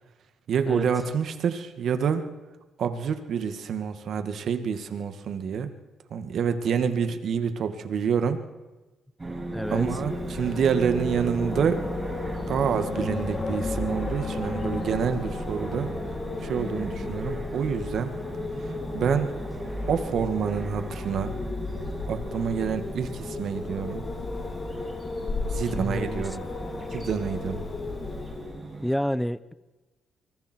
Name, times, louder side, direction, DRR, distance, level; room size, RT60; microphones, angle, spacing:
voice 1, 0.5-2.2 2.8-5.7 6.1-8.4 9.7-11.8 12.5-15.9 16.4-18.1 18.9-19.3 19.9-21.4 22.1-24.0 25.5-26.4 26.9-27.6, right 7 dB, 65° right, 8 dB, 2.1 m, -27 dB
sound 1, 9.2-28.9, right 2 dB, 20° right, 8.0 m, -38 dB
voice 2, 9.5-9.8 25.7-26.2 28.8-29.5, equal, 5° left, 16 dB, 1.0 m, -28 dB
Wind, 9.6-28.6, left 3 dB, 35° left, 3.2 m, -34 dB
25.0 x 22.5 x 4.7 m, 1.1 s
cardioid pair, 90°, 0 cm